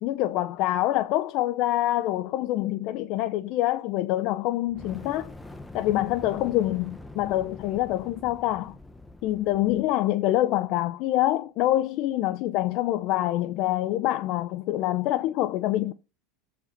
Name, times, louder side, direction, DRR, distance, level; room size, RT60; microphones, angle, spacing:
voice 1, 0.0-5.3 5.7-8.7 9.2-15.9, left 15 dB, 55° left, 0.6 m, -26 dB
Fire, 4.7-9.9, left 2 dB, 5° left, 1.1 m, -44 dB
13.5 x 5.2 x 4.5 m
supercardioid pair, 130°, 0 cm